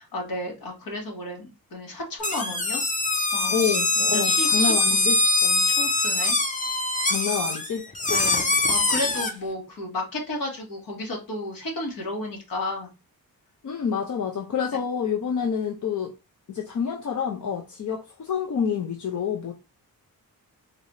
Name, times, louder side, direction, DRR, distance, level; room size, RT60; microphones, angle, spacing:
voice 1, 0.0-2.8 3.3-3.8 4.1-5.1 5.4-6.4 8.1-12.9, left 2 dB, 70° left, 1.9 m, -33 dB
sound 1, 2.2-9.3, left 2 dB, 20° left, 0.7 m, -23 dB
voice 2, 3.5-5.2 7.1-8.2 13.6-16.1 16.5-19.5, left 7 dB, 55° left, 0.7 m, -28 dB
4.0 x 3.3 x 2.7 m
wide cardioid pair, 155°, 35 cm